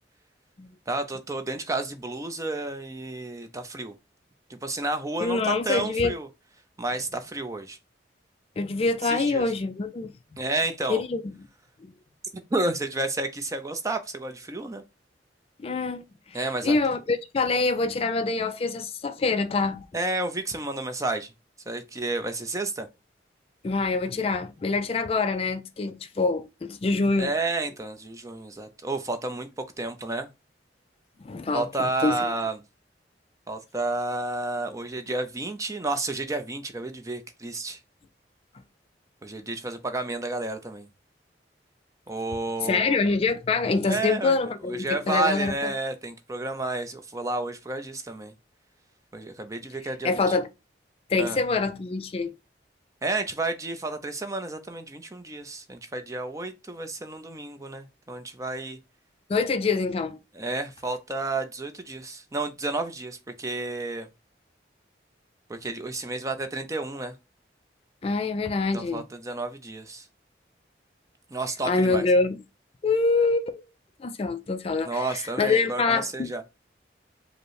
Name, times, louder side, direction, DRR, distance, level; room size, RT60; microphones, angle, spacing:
voice 1, 0.9-3.9 4.5-6.3 6.8-7.8 9.0-9.5 10.4-11.0 12.5-14.8 16.3-16.8 19.9-21.3 21.7-22.9 27.2-30.3 31.5-32.6 33.5-37.8 39.2-40.9 42.1-43.0 43.9-44.4 44.7-48.3 49.1-50.3 51.2-51.4 53.0-58.8 60.3-64.1 65.5-67.2 68.7-70.1 71.3-72.0 74.8-76.5, right 2 dB, 20° right, 0.5 m, -31 dB
voice 2, 5.2-6.2 8.6-10.1 10.9-11.3 11.8-11.9 15.6-19.9 23.6-27.3 31.2-31.7 32.0-32.2 42.6-45.7 50.0-50.5 51.1-52.3 59.3-60.2 68.0-69.0 71.7-72.4 72.8-73.6 74.0-76.3, left 3 dB, 30° left, 0.3 m, -25 dB
5.0 x 2.1 x 4.7 m
head